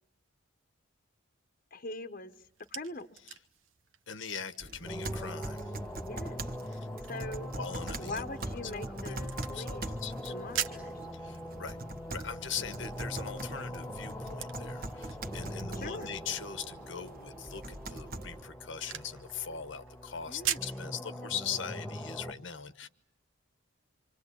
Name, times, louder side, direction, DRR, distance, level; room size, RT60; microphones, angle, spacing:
voice 1, 1.7-3.1 6.0-6.4 7.1-7.5 8.0-9.9 10.3-11.0 15.7-16.1 20.3-20.6, left 2 dB, 40° left, 9 dB, 1.1 m, -42 dB
sound 1, 2.3-20.8, right 9 dB, 70° right, 1.4 m, -45 dB
voice 2, 4.1-5.8 7.2-8.2 9.0-9.2 9.5-10.3 11.1-11.8 12.1-22.9, left 7 dB, 60° left, 11 dB, 1.1 m, -41 dB
sound 2, 4.6-18.5, right 2 dB, 45° right, 1.5 m, -43 dB
sound 3, 4.8-22.3, equal, 5° left, 1.5 m, -42 dB
26.5 x 26.0 x 8.4 m, 0.73 s
head